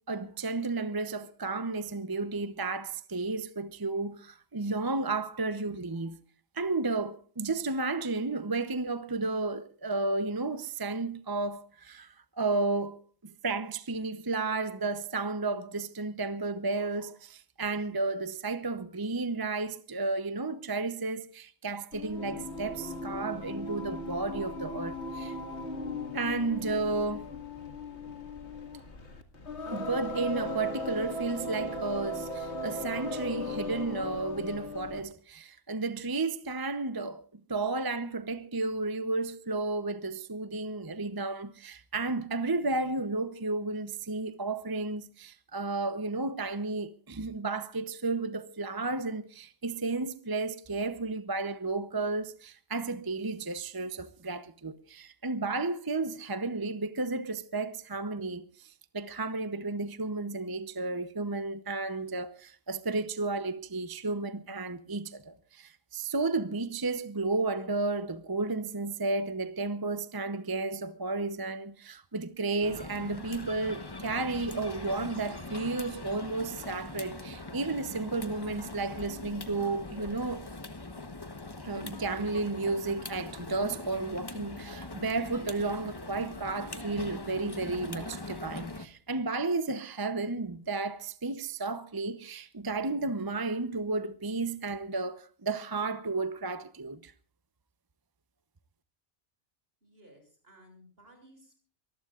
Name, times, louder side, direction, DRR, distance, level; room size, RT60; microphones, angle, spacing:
voice 1, 0.1-6.2 6.5-25.4 26.1-27.2 29.7-37.2 37.5-80.5 81.6-97.1, right 3 dB, 25° right, 0.7 m, -33 dB
Singing, 21.9-35.1, left 2 dB, 90° left, 2.3 m, -37 dB
sound 1, 72.6-88.9, left 2 dB, 25° left, 1.0 m, -42 dB
voice 2, 99.8-101.6, equal, 65° right, 7.2 m, -57 dB
24.5 x 19.0 x 2.4 m
omnidirectional pair, 1.1 m